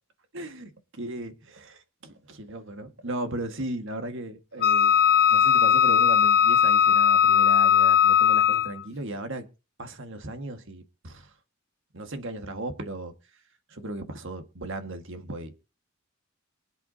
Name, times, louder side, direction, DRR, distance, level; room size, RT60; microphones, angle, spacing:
voice 1, 0.3-5.0 5.3-9.5 9.8-11.3 11.9-13.4 13.7-15.6, right 1 dB, 60° right, 1.7 m, -36 dB
Wind instrument woodwind instrument, 4.6-8.8, left 8 dB, 45° left, 1.1 m, -19 dB
24.0 x 8.1 x 2.8 m
head